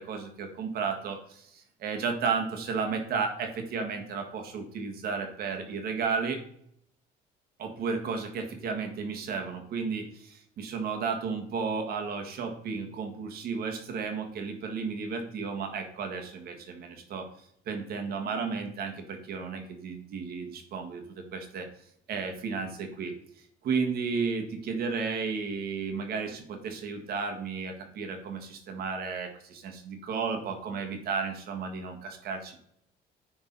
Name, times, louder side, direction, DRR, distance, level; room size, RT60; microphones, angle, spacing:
voice 1, 0.0-6.4 7.6-17.3 17.6-21.7 22.1-23.1 23.6-32.6, right 5 dB, 65° right, 4 dB, 1.6 m, -33 dB
9.8 x 3.9 x 4.0 m, 0.69 s
cardioid pair, 110°, 17 cm